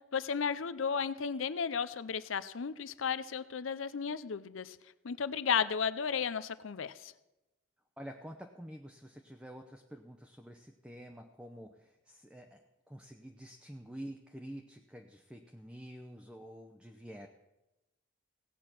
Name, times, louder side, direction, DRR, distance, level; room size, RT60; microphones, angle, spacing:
voice 1, 0.1-4.8 5.0-7.1, left 6 dB, 90° left, 15 dB, 0.6 m, -34 dB
voice 2, 8.0-17.3, equal, 5° right, 4 dB, 0.7 m, -48 dB
16.5 x 8.3 x 6.0 m, 0.98 s
head